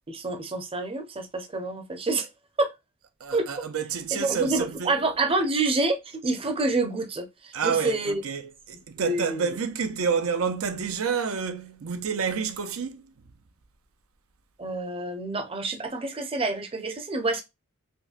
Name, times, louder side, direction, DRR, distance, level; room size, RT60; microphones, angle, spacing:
voice 1, 0.1-2.3 2.6-2.7 3.3-3.5 4.1-8.2 9.0-9.6 14.6-17.4, right 2 dB, 25° right, 0.6 m, -28 dB
voice 2, 3.2-5.0 7.5-13.1, right 6 dB, 80° right, 0.5 m, -29 dB
5.1 x 2.2 x 2.3 m
head